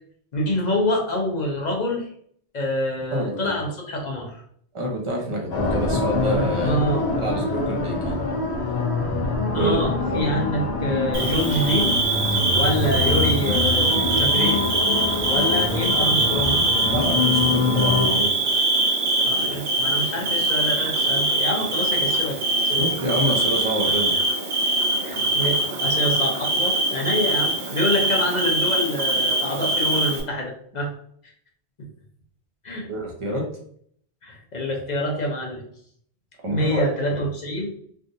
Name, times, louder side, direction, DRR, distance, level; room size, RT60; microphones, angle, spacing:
voice 1, 0.3-2.1 2.5-4.4 6.6-7.3 9.5-11.9 12.3-14.7 15.3-16.6 19.3-22.9 25.0-30.9 32.6-32.9 34.2-35.6 36.5-37.7, equal, 45° left, 0 dB, 0.7 m, -26 dB
voice 2, 3.1-3.5 4.7-6.8 7.2-8.2 9.5-10.3 16.9-18.3 22.8-24.1 32.9-33.4 36.4-36.9, right 1 dB, 30° right, -1 dB, 0.8 m, -27 dB
sound 1, 5.5-18.1, left 3 dB, 65° left, 0.9 m, -25 dB
Bird / Cricket, 11.1-30.2, right 2 dB, 70° right, 1.0 m, -23 dB
3.4 x 2.4 x 2.6 m, 0.63 s
omnidirectional pair, 1.2 m